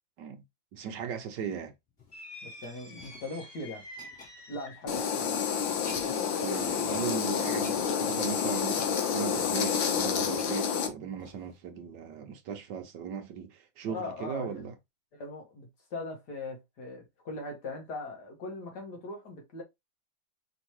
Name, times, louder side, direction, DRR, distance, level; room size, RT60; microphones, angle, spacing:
voice 1, 0.7-1.7 6.4-14.7, right 7 dB, 70° right, 1.4 m, -37 dB
sound 1, 1.9-5.1 5.6-6.3 6.5-7.1 7.4-11.6 12.2-12.3, left 3 dB, 40° left, 2.9 m, -51 dB
sound 2, 2.1-5.0, left 1 dB, 15° left, 1.0 m, -47 dB
voice 2, 2.4-3.9 4.5-5.4 13.9-14.6 15.1-19.6, left 2 dB, 60° left, 2.0 m, -40 dB
sound 3, 4.9-10.9, left 7 dB, 80° left, 1.7 m, -29 dB
5.2 x 3.1 x 3.0 m
omnidirectional pair, 2.1 m